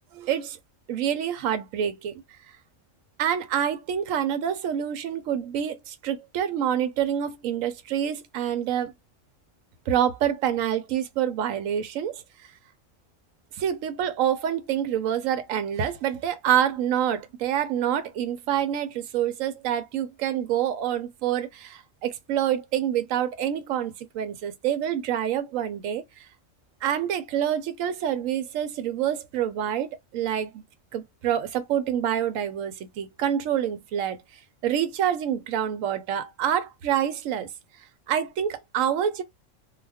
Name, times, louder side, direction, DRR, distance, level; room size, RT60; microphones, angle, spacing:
voice 1, 0.1-0.6 0.9-2.2 3.2-8.9 9.9-12.2 13.6-26.0 26.8-30.6 30.9-34.2 34.6-37.5 38.1-39.2, right 9 dB, 85° right, 1.0 m, -27 dB
2.4 x 2.3 x 3.3 m
omnidirectional pair, 1.3 m